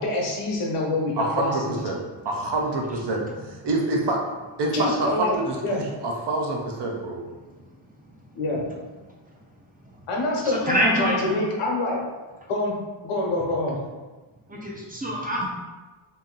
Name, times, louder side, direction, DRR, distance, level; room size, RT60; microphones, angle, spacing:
voice 1, 0.0-1.8 4.7-5.3 5.6-5.8 8.3-8.6 10.1-12.0 12.5-12.8 13.0-13.8, left 2 dB, 85° left, -1 dB, 1.0 m, -26 dB
voice 2, 1.2-4.2 4.6-7.2, right 2 dB, 55° right, 0 dB, 0.7 m, -26 dB
voice 3, 7.4-8.0 8.5-8.6 9.9-10.0 10.4-11.4 14.5-15.5, equal, 20° right, -3 dB, 0.5 m, -27 dB
2.9 x 2.7 x 3.7 m, 1.3 s
wide cardioid pair, 130°, 50 cm